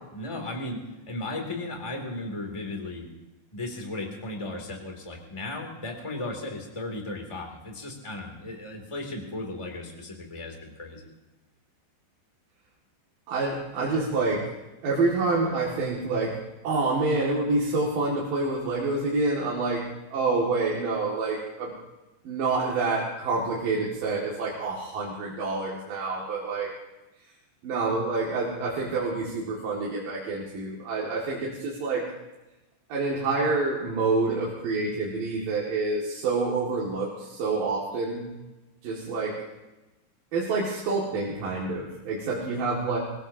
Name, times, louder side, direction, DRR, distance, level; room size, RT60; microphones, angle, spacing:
voice 1, 0.1-0.8 1.0-3.1 3.5-11.0, left 2 dB, 10° left, 2 dB, 1.5 m, -35 dB
voice 2, 13.3-14.4 14.8-16.3 16.6-19.8 20.1-21.7 22.3-26.7 27.6-32.0 32.9-38.2 38.8-39.3 40.3-43.0, right 3 dB, 55° right, -5 dB, 3.5 m, -27 dB
24.0 x 20.0 x 2.8 m, 1.1 s
omnidirectional pair, 5.3 m